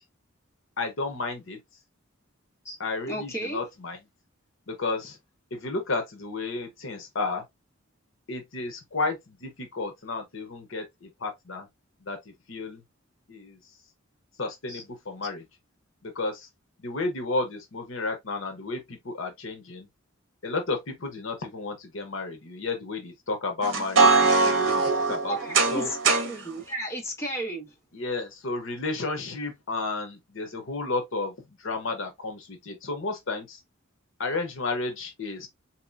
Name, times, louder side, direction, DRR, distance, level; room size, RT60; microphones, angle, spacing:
voice 1, 0.8-1.6 2.8-4.0 4.7-5.2 5.5-7.4 8.3-11.7 12.0-12.2 12.5-12.8 13.3-13.6 14.4-15.4 16.0-16.5 16.8-19.9 20.4-25.4 25.7-25.9 27.9-31.3 31.6-33.6 34.2-35.5, left 3 dB, 70° left, 0.8 m, -32 dB
voice 2, 3.1-3.6 14.7-14.8 25.2-27.7, right 1 dB, 15° left, 1.2 m, -34 dB
sound 1, 23.6-26.4, right 3 dB, 65° right, 0.8 m, -21 dB
3.7 x 2.9 x 2.4 m
head